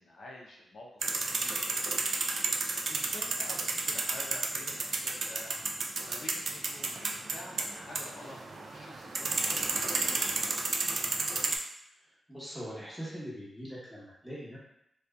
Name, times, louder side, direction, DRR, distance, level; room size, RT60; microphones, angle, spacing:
voice 1, 0.0-1.8 2.9-5.5 6.1-10.5, left 2 dB, 75° left, -3 dB, 0.5 m, -49 dB
sound 1, 1.0-11.6, right 3 dB, 60° right, 0.3 m, -32 dB
voice 2, 12.3-14.6, equal, ahead, -8 dB, 1.0 m, -41 dB
2.6 x 2.2 x 2.3 m, 0.78 s
cardioid pair, 85°, 0 cm